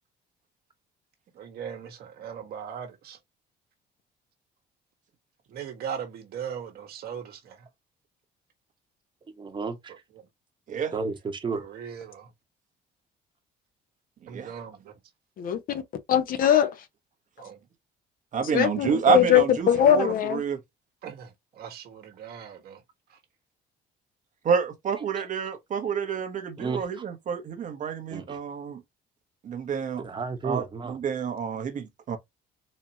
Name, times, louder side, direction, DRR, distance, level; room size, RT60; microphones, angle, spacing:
voice 1, 1.3-3.2 5.5-7.7 11.5-12.3 14.3-14.9 17.4-17.6 21.0-22.8, right 8 dB, 65° right, 1.4 m, -39 dB
voice 2, 9.4-9.9 10.9-11.6 25.1-25.2 26.6-26.8 28.1-28.4 30.0-31.0, right 4 dB, 30° right, 1.1 m, -32 dB
voice 3, 15.4-15.8 16.1-16.7 18.5-20.4, left 9 dB, 55° left, 0.9 m, -21 dB
voice 4, 18.3-20.6 24.4-28.8 29.4-30.0 30.4-32.2, right 6 dB, 50° right, 1.0 m, -28 dB
4.2 x 2.9 x 2.8 m
cardioid pair, 110°, 17 cm